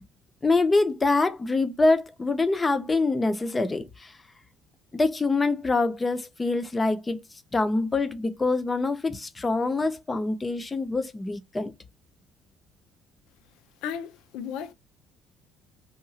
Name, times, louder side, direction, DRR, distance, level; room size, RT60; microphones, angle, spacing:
voice 1, 0.4-4.1 4.9-7.2 7.5-11.7, left 3 dB, 15° left, 0.4 m, -25 dB
voice 2, 13.8-14.7, left 8 dB, 75° left, 0.5 m, -34 dB
2.8 x 2.3 x 2.6 m
cardioid pair, 160°, 0 cm